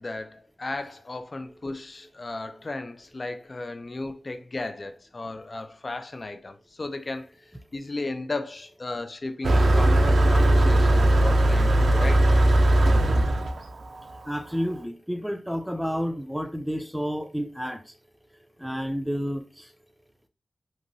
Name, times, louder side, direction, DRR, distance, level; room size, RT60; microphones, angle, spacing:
voice 1, 0.0-7.3 7.7-12.3, left 2 dB, 50° left, 0.4 m, -35 dB
Motor vehicle (road), 9.4-14.6, right 1 dB, 80° right, 0.3 m, -19 dB
voice 2, 14.2-17.9 18.6-19.7, equal, 5° right, 0.5 m, -30 dB
2.9 x 2.5 x 2.6 m
cardioid pair, 40°, 0 cm